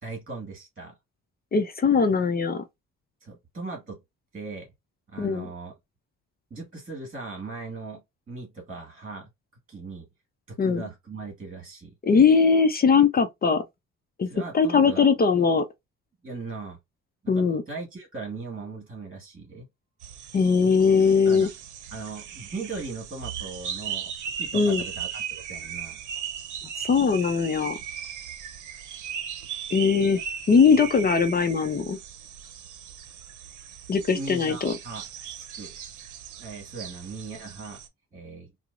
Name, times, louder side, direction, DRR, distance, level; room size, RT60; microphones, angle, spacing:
voice 1, 0.0-1.0 3.2-4.0 4.3-4.7 5.1-5.7 6.5-9.3 9.7-10.1 10.5-11.9 14.3-15.1 16.2-16.8 17.2-19.7 21.3-21.5 21.9-24.1 24.4-25.2 25.5-26.0 30.7-30.8 34.1-35.0 35.4-35.7 36.4-37.8 38.1-38.5, right 3 dB, 25° right, 1.6 m, -38 dB
voice 2, 1.5-2.6 5.2-5.5 10.6-10.8 12.0-13.6 14.2-14.3 14.5-15.7 17.3-17.6 20.3-21.5 24.5-24.8 26.8-27.8 29.7-30.2 30.5-32.0 33.9-34.7, left 5 dB, 30° left, 0.5 m, -20 dB
sound 1, 20.0-37.9, right 8 dB, 80° right, 0.7 m, -38 dB
4.4 x 2.0 x 2.4 m
cardioid pair, 90°, 30 cm